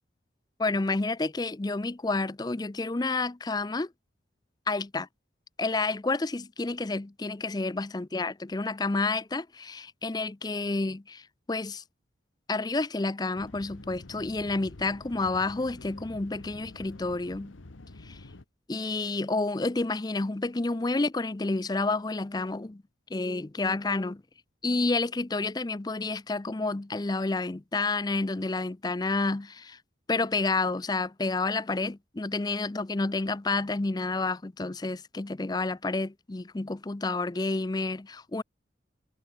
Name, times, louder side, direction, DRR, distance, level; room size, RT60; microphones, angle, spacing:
voice 1, 0.6-3.9 4.7-5.1 5.6-11.8 12.5-17.5 18.0-18.2 18.7-22.8 23.1-24.2 24.6-29.8 30.1-38.4, left 3 dB, 20° left, 0.5 m, -30 dB
sound 1, 13.4-18.4, left 2 dB, 85° left, 1.2 m, -47 dB
head